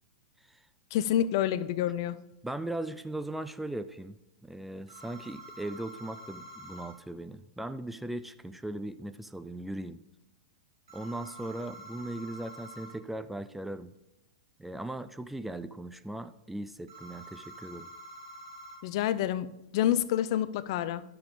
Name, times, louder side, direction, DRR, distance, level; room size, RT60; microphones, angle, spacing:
voice 1, 0.9-2.2 18.8-19.5 19.7-21.0, left 11 dB, 50° left, 15 dB, 0.5 m, -28 dB
voice 2, 2.4-10.0 10.9-13.9 14.6-17.9, right 1 dB, 5° right, 11 dB, 0.4 m, -38 dB
sound 1, 4.9-6.9 10.9-12.9 16.9-18.8, right 1 dB, 65° right, 2.9 m, -47 dB
11.0 x 6.8 x 3.7 m, 0.95 s
figure-of-eight pair, 100°, 3 cm